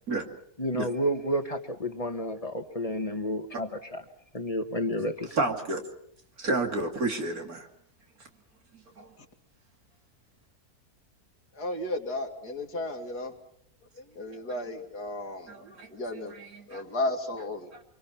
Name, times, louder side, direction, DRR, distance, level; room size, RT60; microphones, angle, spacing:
voice 1, 0.6-4.0 4.3-5.4, equal, 25° left, 7 dB, 1.6 m, -31 dB
voice 2, 5.3-5.8 6.4-7.7 8.7-9.1 14.6-14.7 15.5-16.8 17.7-17.8, right 2 dB, 65° right, 4 dB, 3.1 m, -31 dB
voice 3, 11.6-13.3 14.0-16.3 16.7-17.7, left 1 dB, 85° left, 3 dB, 2.9 m, -34 dB
26.0 x 24.5 x 5.9 m, 0.70 s
omnidirectional pair, 1.6 m